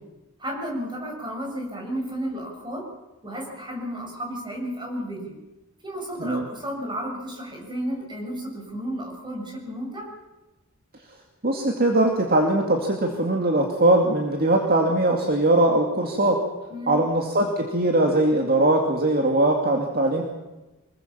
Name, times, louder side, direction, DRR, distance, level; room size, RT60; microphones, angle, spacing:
voice 1, 0.4-2.8 3.2-5.4 5.8-10.1 16.7-17.0, equal, 20° right, 0 dB, 7.2 m, -32 dB
voice 2, 11.4-16.4 16.9-20.2, right 1 dB, 45° right, 2 dB, 2.4 m, -21 dB
25.5 x 21.0 x 7.4 m, 1.1 s
head